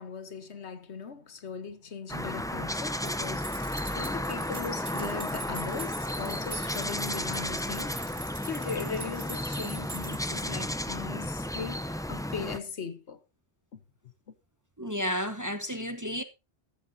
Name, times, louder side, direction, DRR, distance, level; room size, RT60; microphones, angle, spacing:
voice 1, 0.0-13.2 13.7-13.8 14.3-14.4, left 6 dB, 75° left, 1.4 m, -39 dB
sound 1, 2.1-12.6, left 1 dB, 5° left, 0.4 m, -33 dB
sound 2, 3.0-10.8, right 2 dB, 55° right, 2.7 m, -43 dB
voice 2, 14.8-16.2, equal, 15° right, 1.0 m, -32 dB
14.0 x 13.5 x 2.7 m
omnidirectional pair, 1.2 m